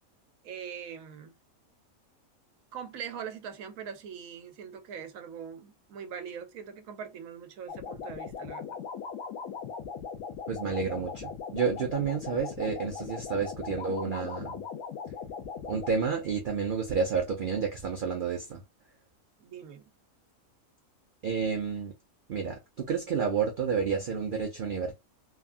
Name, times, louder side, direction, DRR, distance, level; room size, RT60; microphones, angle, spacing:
voice 1, 0.4-1.4 2.7-8.8 19.4-19.9, right 7 dB, 75° right, 1.0 m, -42 dB
sound 1, 7.7-15.9, left 6 dB, 90° left, 1.0 m, -39 dB
voice 2, 10.5-14.6 15.7-18.6 21.2-21.9 22.3-22.5 22.9-24.9, right 6 dB, 55° right, 0.6 m, -30 dB
3.4 x 2.3 x 2.4 m
omnidirectional pair, 1.5 m